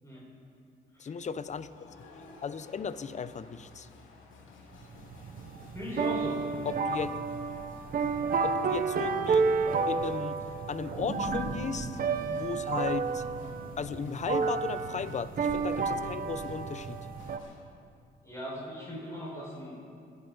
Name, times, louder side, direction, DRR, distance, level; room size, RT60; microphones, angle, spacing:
voice 1, 1.0-1.7 2.4-3.9 6.7-7.1 8.4-12.0 12.3-13.2 13.8-17.0, left 6 dB, 35° left, 13 dB, 0.7 m, -36 dB
sound 1, 1.1-17.6, left 3 dB, 80° left, 2.1 m, -54 dB
sound 2, 4.8-17.4, right 5 dB, 45° right, 1.0 m, -31 dB
voice 2, 5.7-6.4 18.2-19.8, equal, 15° left, -6 dB, 4.9 m, -38 dB
sound 3, 10.8-15.3 15.8-15.9, right 2 dB, 80° right, 2.5 m, -40 dB
27.5 x 10.5 x 3.9 m, 2.4 s
cardioid pair, 90°, 20 cm